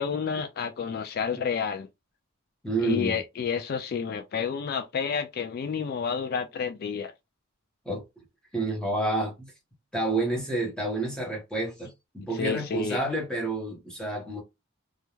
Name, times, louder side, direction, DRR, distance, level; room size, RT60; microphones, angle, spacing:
voice 1, 0.0-1.9 2.8-7.1 12.4-13.0, left 6 dB, 45° left, 0.3 m, -30 dB
voice 2, 2.6-3.2 7.8-8.0 8.5-9.5 9.9-14.4, right 2 dB, 5° left, 0.8 m, -29 dB
2.3 x 2.1 x 3.0 m
head